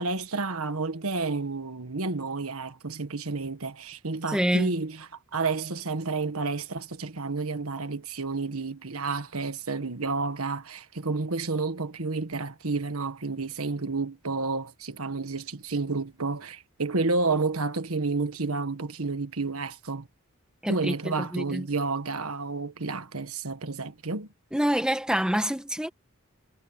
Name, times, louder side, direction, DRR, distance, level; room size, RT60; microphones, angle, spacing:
voice 1, 0.0-20.1 20.7-24.3, right 3 dB, 75° right, 1.5 m, -30 dB
voice 2, 4.3-4.8 20.6-21.6 24.5-25.9, equal, 5° right, 1.5 m, -26 dB
head